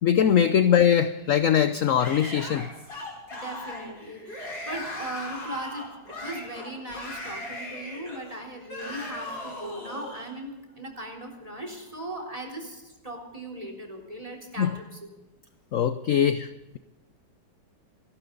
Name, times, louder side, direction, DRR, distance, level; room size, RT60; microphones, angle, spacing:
voice 1, 0.0-2.7 14.6-14.8 15.7-16.8, left 9 dB, 60° left, 11 dB, 0.9 m, -22 dB
Yell / Screaming, 2.0-10.3, left 1 dB, 85° left, 6.1 m, -38 dB
voice 2, 3.3-15.0, right 1 dB, 20° right, 2 dB, 3.8 m, -38 dB
28.5 x 12.0 x 3.9 m, 1.1 s
omnidirectional pair, 1.9 m